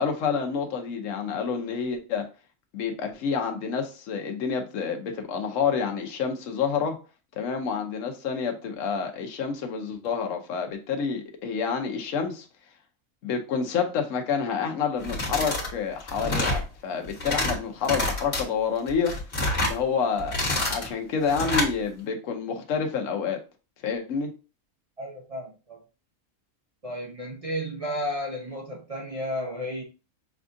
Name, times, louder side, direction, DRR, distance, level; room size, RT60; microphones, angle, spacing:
voice 1, 0.0-2.3 2.7-7.0 7.3-12.5 13.2-19.2 19.6-20.4 20.7-23.4 23.8-24.3, left 6 dB, 65° left, 1.1 m, -28 dB
sound 1, 15.0-15.7 16.0-16.6 17.1-17.5 17.8-18.4 18.9-19.8 20.2-20.9 21.3-21.7, left 2 dB, 40° left, 1.3 m, -27 dB
voice 2, 25.0-25.8 26.8-29.8, equal, 55° right, 0.4 m, -33 dB
5.9 x 2.4 x 2.6 m
omnidirectional pair, 1.5 m